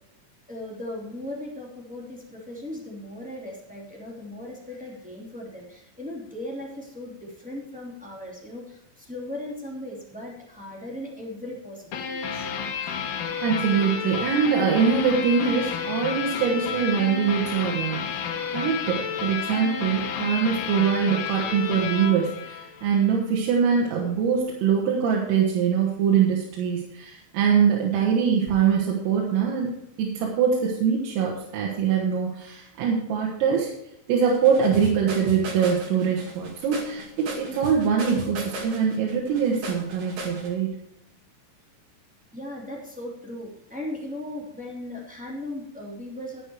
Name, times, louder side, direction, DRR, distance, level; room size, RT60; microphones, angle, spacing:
voice 1, 0.5-12.6 42.3-46.4, left 1 dB, 5° right, -3 dB, 1.1 m, -37 dB
sound 1, 11.9-23.2, left 7 dB, 70° left, 2.1 m, -31 dB
voice 2, 13.4-18.3 18.5-29.7 30.0-33.7 34.1-40.7, right 7 dB, 85° right, -2 dB, 4.2 m, -23 dB
sound 2, 34.3-40.5, right 1 dB, 50° right, 3.2 m, -36 dB
11.5 x 8.8 x 4.7 m, 0.82 s
omnidirectional pair, 5.8 m